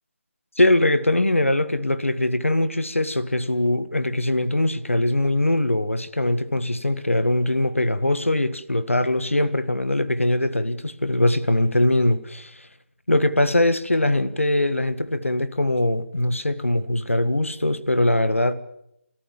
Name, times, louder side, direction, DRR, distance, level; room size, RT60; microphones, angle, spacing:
voice 1, 0.6-12.7 13.1-18.5, left 1 dB, 85° left, 1.7 m, -22 dB
29.0 x 14.0 x 7.4 m
figure-of-eight pair, 150°, 7 cm